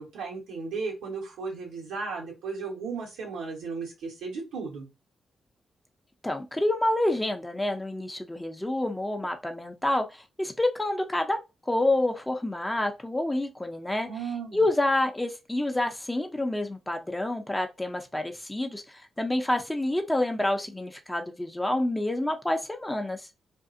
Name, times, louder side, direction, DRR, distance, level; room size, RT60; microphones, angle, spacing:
voice 1, 0.0-4.9 14.1-14.6, right 4 dB, 85° right, 1.1 m, -35 dB
voice 2, 6.2-11.4 11.7-14.1 14.5-23.3, left 1 dB, 15° left, 0.6 m, -28 dB
2.6 x 2.4 x 2.5 m
supercardioid pair, 45°, 0 cm